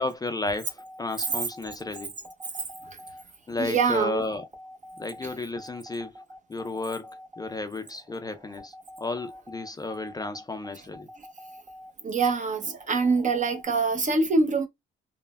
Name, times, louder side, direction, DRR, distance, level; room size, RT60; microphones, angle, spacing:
voice 1, 0.0-2.1 3.5-4.4 5.0-6.1 6.5-11.1, left 3 dB, 20° left, 0.4 m, -33 dB
sound 1, 0.7-13.6, equal, 20° right, 1.0 m, -47 dB
voice 2, 3.6-4.2 5.2-5.3 12.0-14.7, right 4 dB, 40° right, 0.7 m, -24 dB
3.2 x 2.1 x 2.2 m
cardioid pair, 90°, 20 cm